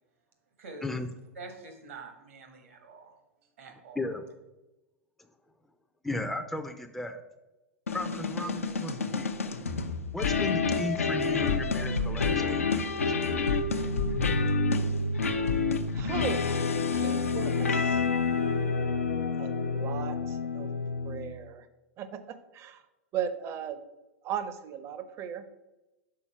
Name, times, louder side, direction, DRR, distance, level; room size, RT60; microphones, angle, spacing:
voice 1, 0.8-1.1 3.9-4.3 6.0-7.2 7.9-9.3 10.1-13.2, left 2 dB, 5° left, 6 dB, 0.5 m, -36 dB
voice 2, 1.3-3.1 3.6-4.0, right 3 dB, 70° right, 5 dB, 1.4 m, -46 dB
sound 1, 7.9-21.4, left 4 dB, 85° left, 0.6 m, -28 dB
voice 3, 15.9-18.0 19.4-20.7 21.0-21.7 22.0-22.8 23.1-23.8 24.2-25.5, right 8 dB, 35° right, 11 dB, 0.7 m, -37 dB
5.7 x 4.2 x 5.6 m, 1.0 s
hypercardioid pair, 95°, 7 cm